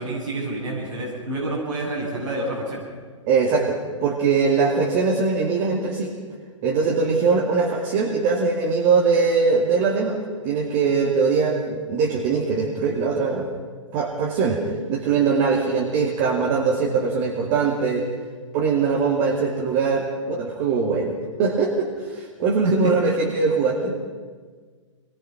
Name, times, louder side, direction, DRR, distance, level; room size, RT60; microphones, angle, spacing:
voice 1, 0.0-2.8 22.6-22.7, right 2 dB, 75° right, -6 dB, 7.9 m, -28 dB
voice 2, 3.3-6.1 6.6-10.2 10.4-13.5 13.9-14.6 14.9-18.1 18.5-21.1 21.4-23.9, right 5 dB, 35° right, 1 dB, 2.4 m, -21 dB
27.0 x 21.0 x 6.0 m, 1.5 s
figure-of-eight pair, 115°, 16 cm